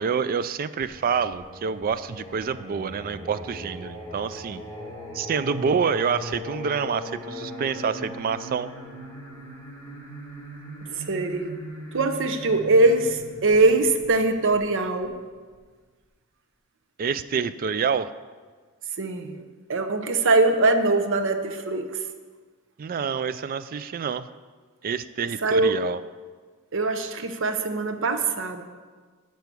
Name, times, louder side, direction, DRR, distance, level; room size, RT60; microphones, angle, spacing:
voice 1, 0.0-4.6 5.1-8.7 17.0-18.1 22.8-24.3 24.8-26.0, right 6 dB, 40° right, 14 dB, 0.3 m, -27 dB
Singing, 0.8-15.5, left 1 dB, 10° left, 2.1 m, -40 dB
voice 2, 10.9-11.5 11.9-15.2 19.0-19.4 19.7-22.0 25.4-25.8 26.7-28.6, right 2 dB, 60° right, 8 dB, 0.7 m, -22 dB
10.5 x 4.7 x 6.8 m, 1.5 s
head